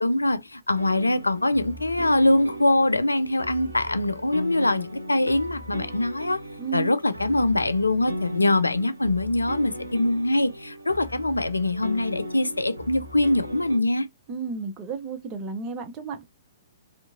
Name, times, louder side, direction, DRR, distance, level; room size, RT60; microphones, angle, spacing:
voice 1, 0.0-6.4 6.7-14.1, left 2 dB, 85° left, 0.3 m, -23 dB
sound 1, 0.7-13.8, equal, 85° right, 0.5 m, -37 dB
voice 2, 6.6-6.9 14.3-16.3, right 5 dB, 30° right, 0.6 m, -32 dB
2.7 x 2.5 x 2.3 m
figure-of-eight pair, 115°, 0 cm